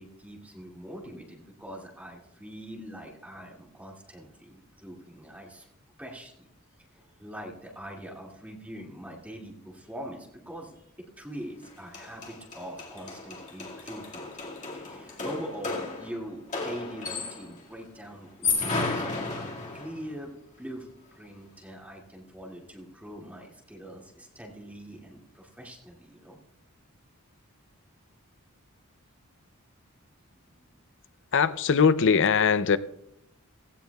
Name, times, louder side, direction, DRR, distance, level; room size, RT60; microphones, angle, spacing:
voice 1, 0.0-5.7 6.0-6.5 6.9-14.3 14.7-26.4 30.5-30.8, equal, 5° right, 2.2 m, -43 dB
sound 1, 11.6-11.7 11.9-17.6 18.2-20.0, left 4 dB, 35° left, 2.0 m, -33 dB
voice 2, 31.3-32.8, left 6 dB, 55° left, 0.5 m, -21 dB
16.5 x 16.0 x 2.3 m
head